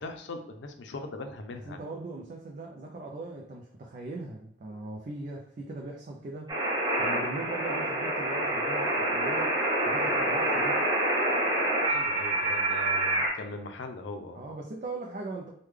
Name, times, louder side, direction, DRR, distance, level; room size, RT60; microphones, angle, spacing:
voice 1, 0.0-1.8 11.9-14.4, left 2 dB, 85° left, 6 dB, 0.5 m, -40 dB
voice 2, 1.5-6.5 7.0-9.6 9.9-10.8 14.3-15.5, right 2 dB, 45° right, 0 dB, 0.3 m, -39 dB
sound 1, 6.5-13.3, right 1 dB, 25° right, 0.7 m, -27 dB
3.5 x 2.2 x 3.2 m, 0.72 s
head